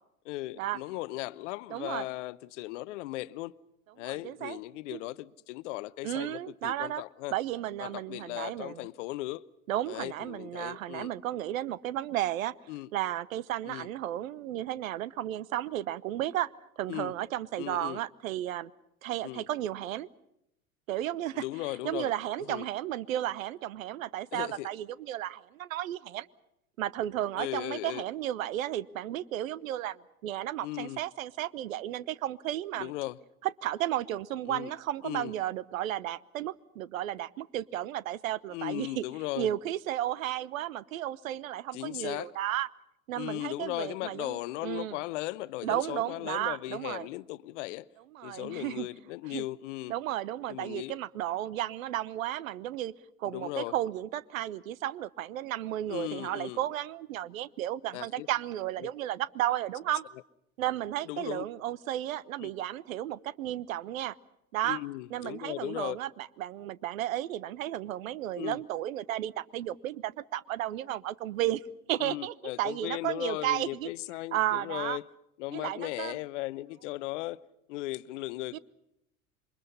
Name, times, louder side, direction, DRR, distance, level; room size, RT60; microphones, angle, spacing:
voice 1, 0.2-3.5 4.0-7.3 7.8-9.4 9.9-11.1 12.7-12.9 13.6-13.9 16.9-17.1 17.6-18.0 19.2-19.4 21.3-22.1 22.5-22.6 24.3-24.7 27.4-28.0 30.6-31.0 32.8-33.2 34.5-34.7 35.0-35.3 38.5-39.5 41.7-42.3 43.1-47.9 48.2-49.9 50.5-51.0 53.3-53.7 55.9-56.6 57.9-58.3 58.8-58.9 61.1-61.4 62.4-62.5 64.6-66.0 68.4-68.6 72.0-75.0 75.4-77.4 77.7-78.6, left 18 dB, 55° left, 0.9 m, -37 dB
voice 2, 1.7-2.0 4.0-4.6 4.9-5.0 6.0-7.0 7.3-8.9 9.7-12.5 12.9-18.7 19.0-20.1 20.9-21.4 21.8-26.3 26.8-32.9 33.4-39.0 39.4-42.7 43.1-45.0 45.6-47.1 48.1-48.9 49.3-49.4 49.9-52.9 53.2-60.0 60.6-64.1 64.5-64.8 65.1-71.6 71.9-73.9 74.3-75.0 75.5-76.2 78.5-78.6, right 13 dB, 65° right, 1.0 m, -33 dB
27.5 x 24.0 x 5.5 m
figure-of-eight pair, 85°, 44 cm